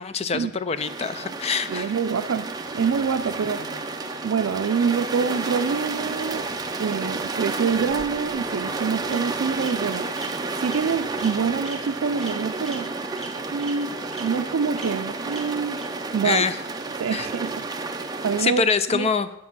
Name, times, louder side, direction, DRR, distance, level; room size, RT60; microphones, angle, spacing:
voice 1, 0.0-1.9 3.6-3.8 16.2-16.6 17.1-17.3 18.4-19.3, left 5 dB, 30° left, 13 dB, 0.4 m, -25 dB
sound 1, 0.8-18.4, right 3 dB, 20° right, 0.6 m, -31 dB
sound 2, 1.4-14.4, right 2 dB, 40° right, 1.8 m, -52 dB
voice 2, 1.7-3.6 4.2-6.5 6.8-12.9 13.5-15.8 16.1-16.4 17.0-18.6 18.9-19.1, right 6 dB, 75° right, 7 dB, 0.4 m, -26 dB
Bird vocalization bird call bird song, 7.7-8.4 9.1-9.2 9.6-9.7 10.2-10.3 10.7-10.8 11.2-11.3 11.6-11.8 12.2-12.3 12.7-12.8 13.2-13.3 13.6-13.7 14.1-14.2 14.8-14.9 15.3-15.4 15.8-15.9, right 2 dB, ahead, 1.7 m, -39 dB
9.5 x 6.0 x 6.0 m, 0.88 s
head